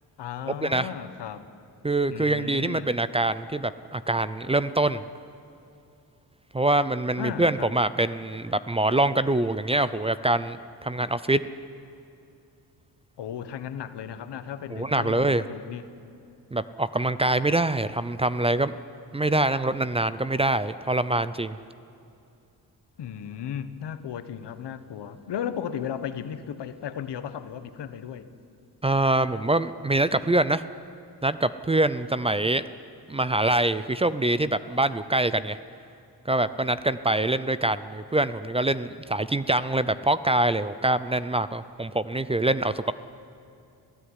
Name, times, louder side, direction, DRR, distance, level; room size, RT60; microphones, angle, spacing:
voice 1, 0.2-1.4 2.1-2.9 7.2-7.7 13.2-15.8 23.0-28.3, left 9 dB, 85° left, 11 dB, 1.5 m, -35 dB
voice 2, 1.8-5.0 6.5-10.6 10.8-11.4 14.7-15.4 16.5-18.7 19.1-21.6 28.8-30.6 31.2-32.6 33.1-35.6 36.3-42.9, right 2 dB, 15° right, 14 dB, 0.6 m, -24 dB
27.0 x 16.5 x 9.9 m, 2.6 s
wide cardioid pair, 130°, 40 cm